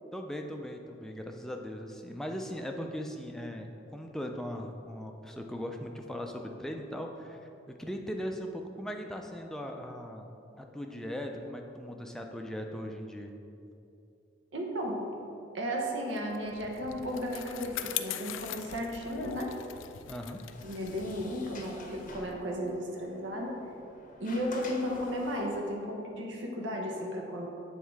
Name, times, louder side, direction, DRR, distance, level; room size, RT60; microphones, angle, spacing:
voice 1, 0.1-10.3 10.6-13.3 20.1-20.4, equal, 5° left, 2 dB, 0.4 m, -39 dB
voice 2, 14.5-15.0 15.5-19.5 20.6-23.6 24.2-27.5, equal, 80° right, 0 dB, 0.8 m, -34 dB
Bicycle, 16.2-22.9, left 11 dB, 90° left, 0.3 m, -42 dB
Sliding door, 20.2-25.7, left 3 dB, 45° left, 0.7 m, -50 dB
7.3 x 3.6 x 4.6 m, 2.7 s
head